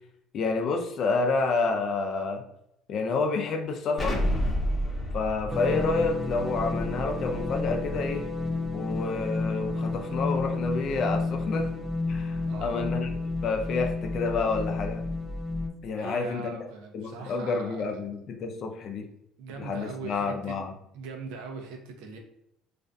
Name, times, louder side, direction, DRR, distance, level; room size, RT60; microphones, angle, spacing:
voice 1, 0.3-2.4 2.9-4.2 5.1-8.2 8.7-11.7 12.1-13.1 13.4-15.0 15.8-16.6 16.9-19.1 19.6-20.7, left 4 dB, 50° left, 4 dB, 0.4 m, -29 dB
Explosion, 4.0-8.7, equal, 20° left, 0.7 m, -31 dB
sound 1, 5.5-15.7, left 3 dB, 10° right, 0.4 m, -31 dB
voice 2, 12.5-12.9 15.9-18.0 19.4-20.6 20.9-22.2, right 4 dB, 85° right, 4 dB, 0.5 m, -40 dB
2.4 x 2.2 x 2.5 m, 0.78 s
supercardioid pair, 105°, 0 cm